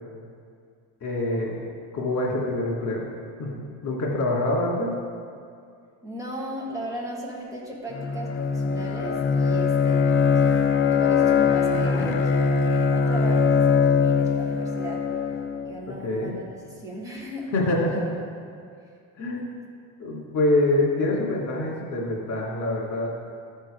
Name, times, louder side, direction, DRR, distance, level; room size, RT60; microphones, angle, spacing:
voice 1, 1.0-1.6 1.9-3.0 3.4-4.9 15.9-16.4 17.5-18.0 19.2-19.5 20.0-23.1, left 2 dB, 60° left, -3 dB, 2.4 m, -25 dB
voice 2, 6.0-10.5 10.9-15.0 15.6-17.5 17.9-18.2 19.3-19.6, right 1 dB, 10° right, -4 dB, 1.5 m, -36 dB
Bowed string instrument, 7.9-15.7, left 5 dB, 40° left, 0.5 m, -22 dB
13.5 x 4.5 x 5.0 m, 2.3 s
cardioid pair, 160°, 33 cm